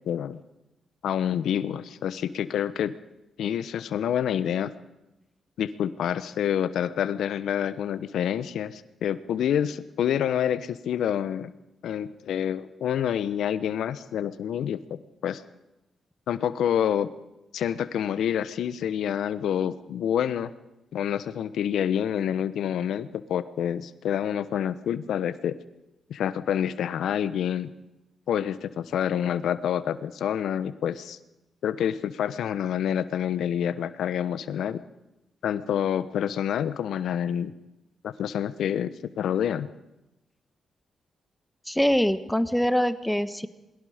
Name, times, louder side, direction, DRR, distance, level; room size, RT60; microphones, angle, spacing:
voice 1, 0.1-0.4 1.0-2.9 3.4-4.7 5.6-11.5 11.8-15.4 16.3-17.1 17.5-20.5 20.9-25.6 26.1-27.7 28.3-31.2 31.6-34.8 35.4-37.5 38.0-39.7, left 9 dB, 75° left, 14 dB, 1.0 m, -27 dB
voice 2, 41.7-43.5, equal, 5° left, 11 dB, 1.4 m, -24 dB
27.5 x 22.0 x 5.1 m, 0.96 s
supercardioid pair, 45°, 0 cm